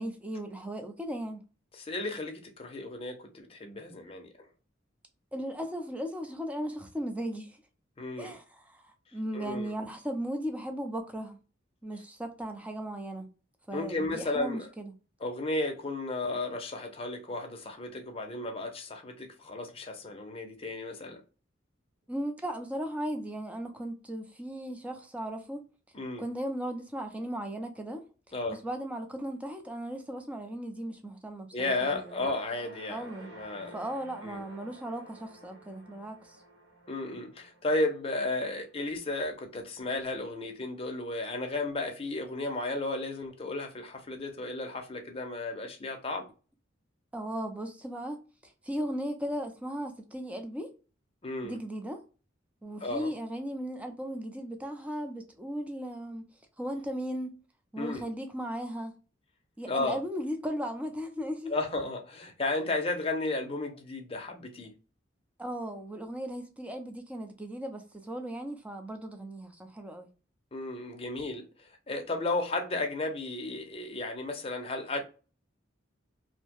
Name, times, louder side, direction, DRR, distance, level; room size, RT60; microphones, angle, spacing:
voice 1, 0.0-1.4 5.3-7.6 8.2-11.4 11.8-13.3 13.7-14.9 22.1-25.6 26.2-28.0 28.5-32.1 32.9-33.3 33.7-36.4 47.1-50.7 51.4-52.0 52.6-56.2 56.6-57.4 57.7-58.9 59.6-61.5 65.4-70.1, equal, 5° right, 0.5 m, -37 dB
voice 2, 1.7-4.3 8.0-8.3 9.3-9.7 13.7-14.7 15.2-21.2 25.9-26.2 28.3-28.6 31.5-33.8 34.2-34.4 36.9-46.3 51.2-51.6 52.8-53.1 57.8-58.0 59.6-60.0 61.5-64.7 70.5-75.0, left 2 dB, 30° left, 0.6 m, -34 dB
sound 1, 31.8-40.2, right 3 dB, 65° right, 1.1 m, -53 dB
2.7 x 2.1 x 2.9 m
head